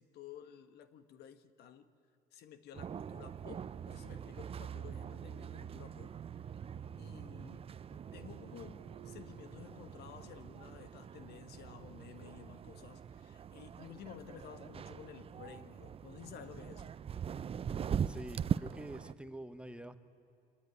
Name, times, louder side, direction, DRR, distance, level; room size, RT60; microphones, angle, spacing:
voice 1, 0.0-1.9 2.3-6.2 7.0-16.9, left 9 dB, 70° left, 11 dB, 1.4 m, -53 dB
sound 1, 2.7-19.1, right 8 dB, 35° right, 0.6 m, -42 dB
sound 2, 7.9-9.5, right 9 dB, 55° right, 1.3 m, -61 dB
voice 2, 18.1-20.0, right 1 dB, 5° right, 10 dB, 1.1 m, -46 dB
26.0 x 18.5 x 9.7 m, 2.6 s
cardioid pair, 110°, 17 cm